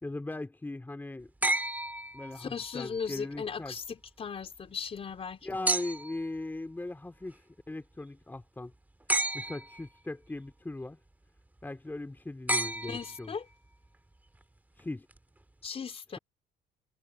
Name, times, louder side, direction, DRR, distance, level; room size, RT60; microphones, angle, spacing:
voice 1, 0.0-1.5 2.1-3.7 5.4-7.4 7.7-8.7 9.3-11.0 11.6-13.3 14.8-15.1, left 2 dB, 10° left, 3.3 m, -39 dB
sound 1, 1.4-2.8 5.7-6.3 9.1-9.9 12.5-13.5 15.1-15.2, right 1 dB, 10° right, 2.2 m, -31 dB
voice 2, 2.3-5.7 12.8-13.5 15.6-16.2, left 6 dB, 35° left, 3.8 m, -38 dB
cardioid pair, 110°, 17 cm